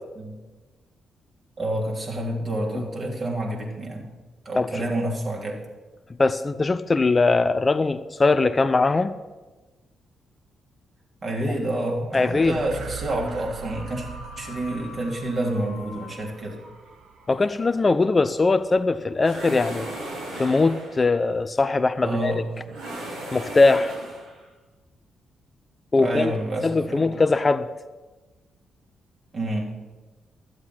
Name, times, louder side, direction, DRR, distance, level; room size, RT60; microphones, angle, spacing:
voice 1, 1.6-4.1 4.4-5.6 11.2-14.0 14.4-16.6 22.0-22.4 26.0-27.2 29.3-29.7, right 1 dB, 45° right, -2 dB, 3.3 m, -28 dB
voice 2, 6.2-9.1 12.1-12.5 17.3-19.9 20.3-22.3 23.3-23.9 25.9-26.3 26.6-27.7, left 3 dB, 35° left, 12 dB, 0.6 m, -21 dB
sound 1, 12.1-20.8, right 7 dB, 70° right, 0.9 m, -43 dB
sound 2, 13.7-18.2, left 6 dB, 80° left, 1.3 m, -47 dB
sound 3, 19.2-21.1 22.7-24.4, right 1 dB, 90° right, 3.0 m, -36 dB
12.5 x 8.0 x 5.8 m, 1.2 s
hypercardioid pair, 45°, 0 cm